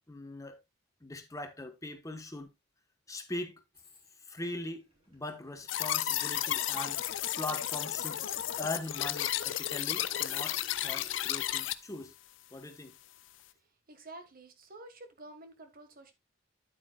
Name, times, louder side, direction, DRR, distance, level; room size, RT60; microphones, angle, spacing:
voice 1, 0.1-0.6 1.0-2.5 3.1-3.6 4.3-7.0 7.3-8.2 8.6-12.1 12.5-13.0, left 2 dB, 15° left, 1.2 m, -41 dB
sound 1, 3.7-4.2 4.6-11.6, right 1 dB, 30° right, 4.5 m, -57 dB
sound 2, 5.7-11.7, left 12 dB, 75° left, 0.5 m, -33 dB
voice 2, 13.9-16.1, right 2 dB, 50° right, 1.6 m, -50 dB
9.6 x 8.5 x 2.3 m
head